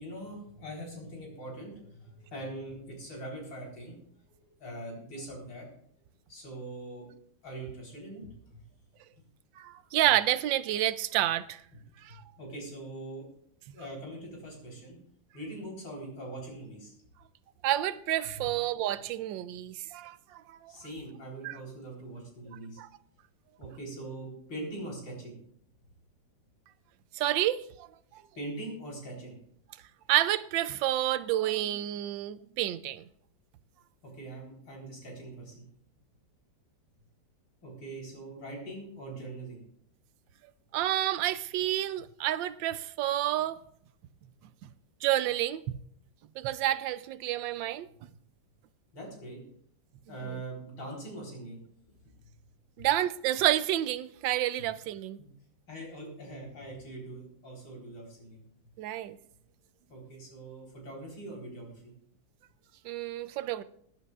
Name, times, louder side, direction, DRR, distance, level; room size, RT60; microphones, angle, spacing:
voice 1, 0.0-4.0 4.4-5.7 6.3-7.1 7.4-8.3 12.4-13.2 13.7-15.0 15.3-16.9 18.4-18.5 20.7-22.8 23.6-25.4 28.3-29.3 34.1-35.6 37.6-39.6 48.9-49.4 50.1-51.6 52.0-52.1 55.2-55.3 55.7-58.4 59.9-61.9, right 1 dB, 85° left, 4.8 m, -42 dB
voice 2, 9.6-11.6 12.0-12.2 17.6-20.7 21.4-21.6 22.8-22.9 27.1-27.9 28.1-28.2 30.1-33.0 40.7-43.6 44.6-44.7 45.0-45.8 46.4-47.9 50.3-50.4 52.8-55.2 58.8-59.2 62.8-63.6, right 13 dB, 80° right, 1.3 m, -29 dB
20.5 x 11.0 x 2.4 m
omnidirectional pair, 2.0 m